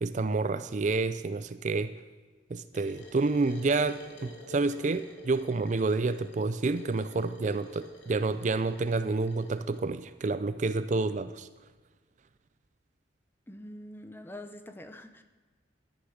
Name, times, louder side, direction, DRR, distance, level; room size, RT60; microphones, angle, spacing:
voice 1, 0.0-1.9 2.5-11.5, right 3 dB, 40° right, 13 dB, 0.4 m, -29 dB
sound 1, 2.7-9.9, right 1 dB, 75° left, 2.5 m, -48 dB
voice 2, 13.5-15.2, left 1 dB, 10° left, 8 dB, 0.8 m, -45 dB
13.0 x 10.0 x 6.4 m, 1.3 s
head